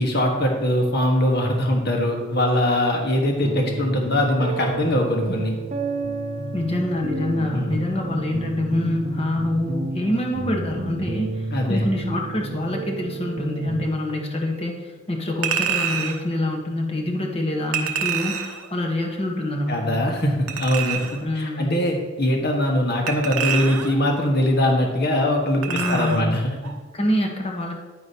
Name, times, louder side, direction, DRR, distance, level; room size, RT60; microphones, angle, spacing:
voice 1, 0.0-5.5 7.5-7.8 11.5-11.8 19.7-26.7, left 1 dB, 50° left, 1 dB, 1.4 m, -22 dB
sound 1, 3.4-13.9, right 3 dB, 30° right, 0.7 m, -31 dB
voice 2, 6.5-18.4 18.7-20.0 21.2-21.8 25.7-26.4 26.9-27.8, left 1 dB, 25° left, 1 dB, 1.1 m, -26 dB
Chink clink, 15.4-16.2 17.7-18.7 20.5-21.2 23.1-24.0 25.6-26.3 26.6-26.8, right 7 dB, 85° right, 0.9 m, -27 dB
9.6 x 8.8 x 2.9 m, 1.3 s
head